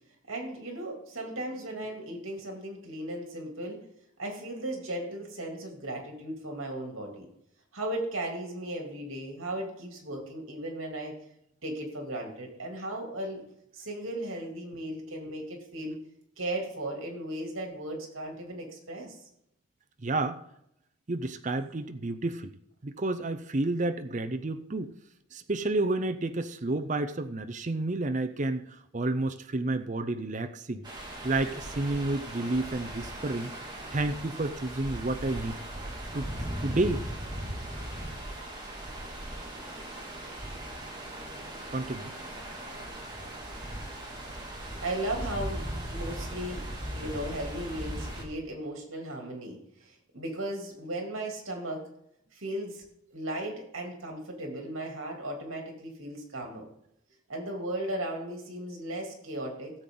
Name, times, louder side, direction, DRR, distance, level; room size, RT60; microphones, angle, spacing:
voice 1, 0.3-3.8 4.2-7.3 7.7-11.1 11.6-13.4 13.7-15.9 16.4-19.2 44.8-46.7 46.9-51.9 52.3-52.8 53.1-56.7 57.3-59.7, right 1 dB, 70° right, 1 dB, 3.1 m, -36 dB
voice 2, 20.0-20.4 21.1-24.9 25.3-30.8 31.2-33.5 33.9-35.6 36.1-36.3 36.6-37.0 41.7-42.1, right 2 dB, 35° right, 8 dB, 0.6 m, -30 dB
sound 1, 30.8-48.2, right 1 dB, 20° right, 2.3 m, -38 dB
17.0 x 7.6 x 3.9 m, 0.78 s
head